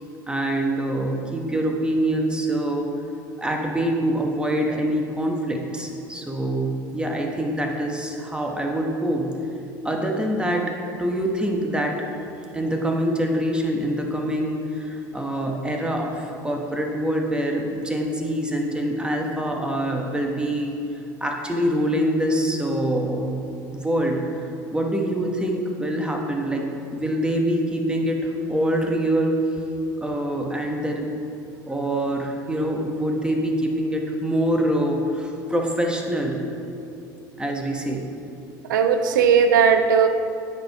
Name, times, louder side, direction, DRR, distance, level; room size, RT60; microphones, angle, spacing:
voice 1, 0.3-2.9 3.4-9.3 9.8-11.9 12.5-20.8 21.2-23.4 23.7-29.4 30.0-31.1 31.6-36.5 37.4-38.1, right 1 dB, 10° right, 1 dB, 1.2 m, -25 dB
voice 2, 38.7-40.1, right 6 dB, 80° right, 8 dB, 0.6 m, -17 dB
9.3 x 4.6 x 4.7 m, 2.7 s
hypercardioid pair, 75°, 10 cm